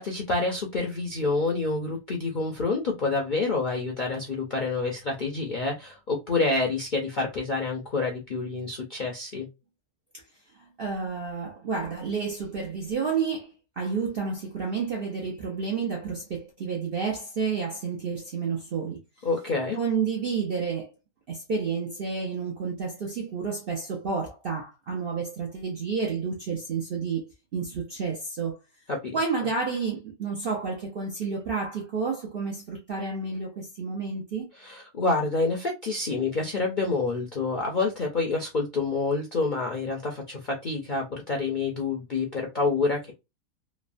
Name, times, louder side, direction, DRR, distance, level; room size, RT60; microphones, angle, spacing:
voice 1, 0.0-9.5 19.2-19.8 28.9-29.2 34.6-43.1, left 3 dB, 55° left, 0.5 m, -28 dB
voice 2, 10.6-19.0 19.8-20.9 21.3-28.6 29.1-34.5, right 5 dB, 60° right, 0.6 m, -30 dB
3.2 x 2.0 x 2.4 m
omnidirectional pair, 1.6 m